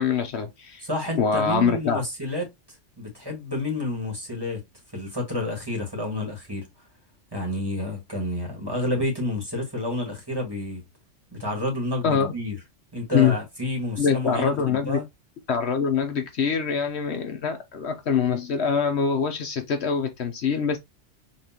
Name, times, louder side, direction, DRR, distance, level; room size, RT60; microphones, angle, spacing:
voice 1, 0.0-0.9 1.2-2.0 12.0-12.3 13.1-13.4 14.0-15.0 15.5-20.8, left 6 dB, 65° left, 1.0 m, -24 dB
voice 2, 0.8-2.5 3.0-4.6 4.9-6.7 7.3-10.8 11.3-12.6 12.9-15.0, left 1 dB, 20° right, 1.8 m, -29 dB
5.8 x 3.1 x 2.9 m
omnidirectional pair, 1.3 m